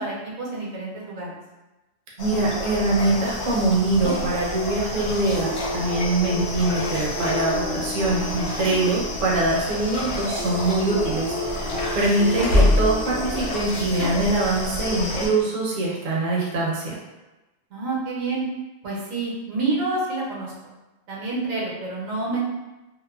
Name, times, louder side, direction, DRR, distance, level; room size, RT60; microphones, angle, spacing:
voice 1, 0.0-1.4 6.3-6.4 8.6-8.8 17.7-18.4 18.8-20.5 21.1-22.4, right 3 dB, 80° right, -4 dB, 1.1 m, -28 dB
sound 1, 2.2-15.3, left 2 dB, 85° left, 1.1 m, -30 dB
voice 2, 2.2-17.0, right 2 dB, 50° right, -5 dB, 0.7 m, -23 dB
sound 2, 5.3-9.4 10.4-14.0 15.4-15.5, left 2 dB, 50° left, 1.1 m, -33 dB
sound 3, 9.4-13.1, left 1 dB, 65° left, 0.5 m, -25 dB
2.9 x 2.0 x 2.2 m, 1.1 s
omnidirectional pair, 1.4 m